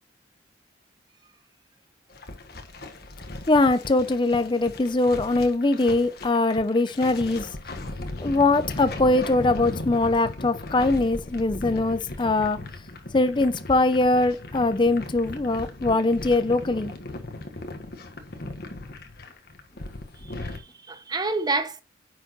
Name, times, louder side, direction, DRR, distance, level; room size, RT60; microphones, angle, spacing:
sound 1, 2.1-20.6, left 2 dB, 60° left, 1.4 m, -37 dB
voice 1, 3.5-7.5 8.2-12.6 13.1-16.9, left 2 dB, 25° left, 0.5 m, -22 dB
voice 2, 20.2-21.8, right 3 dB, 25° right, 0.9 m, -29 dB
9.8 x 6.3 x 3.0 m
head